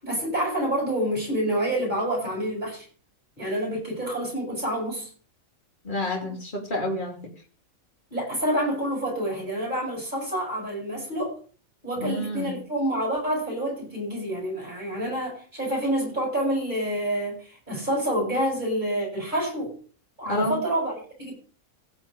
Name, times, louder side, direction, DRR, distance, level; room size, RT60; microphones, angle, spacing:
voice 1, 0.0-2.9 3.4-5.1 8.1-11.4 11.8-19.7 20.2-21.3, right 1 dB, 30° right, -1 dB, 8.3 m, -28 dB
voice 2, 5.8-7.2 12.0-12.5 20.3-20.6, left 1 dB, 35° left, 1 dB, 3.0 m, -29 dB
16.0 x 5.7 x 6.7 m, 0.41 s
omnidirectional pair, 1.5 m